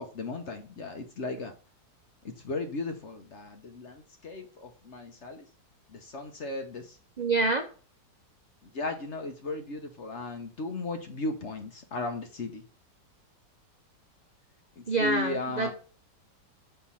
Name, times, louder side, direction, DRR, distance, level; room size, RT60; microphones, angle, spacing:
voice 1, 0.0-1.5 2.2-5.4 5.9-7.0 8.6-12.6 14.8-15.7, left 3 dB, 50° left, 5 dB, 1.0 m, -36 dB
voice 2, 7.2-7.6 14.9-15.7, right 3 dB, 55° right, 4 dB, 0.5 m, -26 dB
6.7 x 3.5 x 5.5 m, 0.37 s
omnidirectional pair, 1.9 m